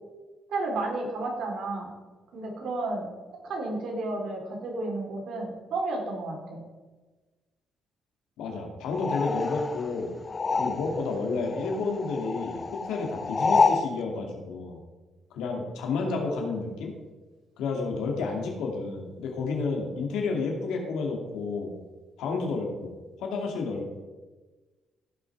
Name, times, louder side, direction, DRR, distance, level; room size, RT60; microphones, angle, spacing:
voice 1, 0.5-1.9 2.3-3.1 3.4-6.6, right 2 dB, 75° right, 0 dB, 3.2 m, -32 dB
voice 2, 8.4-10.1 10.6-14.8 15.3-17.0 17.6-21.7 22.2-22.9 23.2-24.0, left 4 dB, 90° left, 1 dB, 2.4 m, -31 dB
sound 1, 8.9-11.2 11.4-13.9, left 4 dB, 30° left, 0.7 m, -28 dB
16.0 x 5.9 x 4.8 m, 1.3 s
cardioid pair, 90°, 0 cm